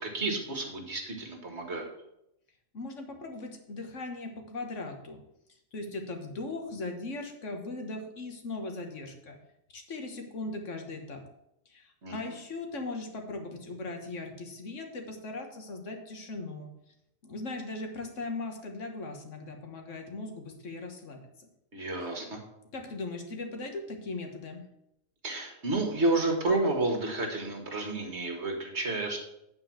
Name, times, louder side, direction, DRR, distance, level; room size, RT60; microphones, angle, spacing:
voice 1, 0.0-1.9 12.0-12.4 21.7-22.4 25.2-29.2, right 2 dB, 55° right, 3 dB, 1.9 m, -30 dB
voice 2, 2.7-5.2 5.7-9.4 9.7-11.2 11.7-16.7 17.2-21.5 22.7-24.6, left 2 dB, 65° left, 4 dB, 1.7 m, -39 dB
8.9 x 4.7 x 7.5 m, 0.82 s
omnidirectional pair, 1.4 m